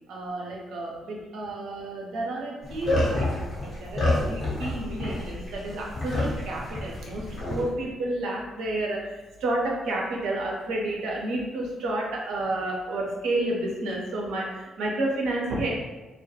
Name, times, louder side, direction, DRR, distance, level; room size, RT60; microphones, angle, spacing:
voice 1, 0.1-15.7, right 2 dB, 65° right, -2 dB, 0.5 m, -30 dB
sound 1, 2.6-7.6, left 1 dB, 50° left, 0.9 m, -29 dB
2.2 x 2.0 x 2.8 m, 1.2 s
figure-of-eight pair, 40°, 0 cm